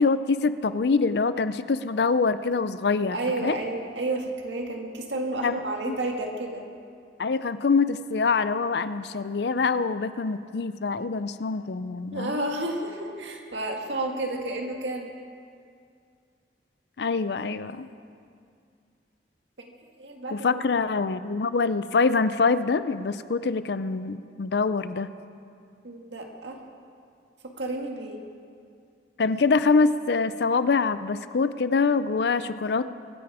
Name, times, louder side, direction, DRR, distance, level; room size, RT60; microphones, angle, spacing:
voice 1, 0.0-3.2 3.4-3.6 5.4-5.6 5.9-6.0 7.2-12.4 17.0-17.9 20.3-25.1 29.2-32.9, left 4 dB, 65° left, 13 dB, 0.5 m, -24 dB
voice 2, 3.1-6.6 12.1-15.1 20.0-20.6 25.8-26.6 27.4-28.2, right 2 dB, 85° right, 2 dB, 1.8 m, -31 dB
23.0 x 9.5 x 4.9 m, 2.3 s
head